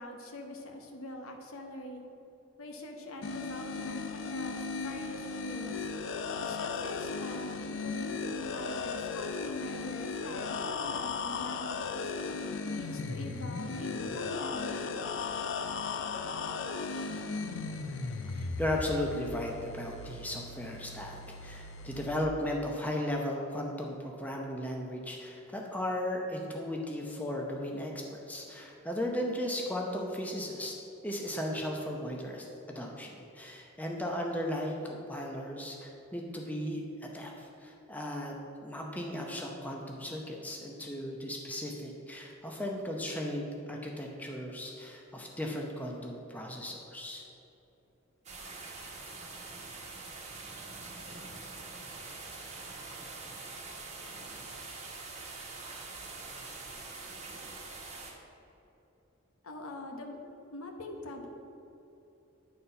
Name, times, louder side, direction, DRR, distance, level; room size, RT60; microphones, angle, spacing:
voice 1, 0.0-2.0 2.6-5.9 6.4-12.1 12.6-15.5 59.4-60.2 60.5-61.3, left 1 dB, 85° left, 3 dB, 1.0 m, -43 dB
sound 1, 3.2-22.2, left 4 dB, 65° left, 0.4 m, -36 dB
voice 2, 18.3-30.7 31.0-38.3 38.6-47.3, left 1 dB, 5° left, 0 dB, 0.7 m, -36 dB
sound 2, 48.2-58.1, right 3 dB, 30° right, 1.2 m, -44 dB
9.4 x 4.2 x 5.6 m, 3.0 s
head